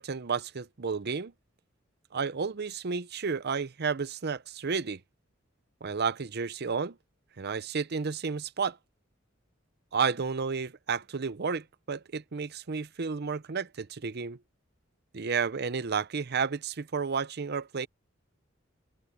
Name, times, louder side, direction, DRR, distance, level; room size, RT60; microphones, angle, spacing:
voice 1, 0.0-1.3 2.1-5.0 5.8-7.0 7.4-8.8 9.9-14.4 15.1-17.9, right 5 dB, 55° right, 0.7 m, -31 dB
open air
head